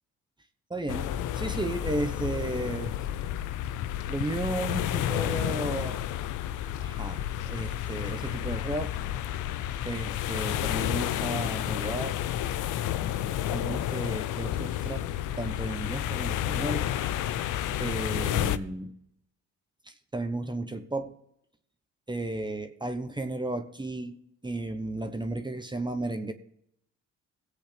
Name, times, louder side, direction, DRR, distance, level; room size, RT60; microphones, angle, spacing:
voice 1, 0.7-3.0 4.1-6.0 6.8-9.0 9.8-12.2 13.5-15.1 15.4-16.9 17.8-19.0 20.1-21.1 22.1-26.3, right 2 dB, 15° right, 1.0 m, -34 dB
sound 1, 0.9-18.6, left 12 dB, 85° left, 0.6 m, -31 dB
17.5 x 8.1 x 3.4 m
cardioid pair, 90°, 30 cm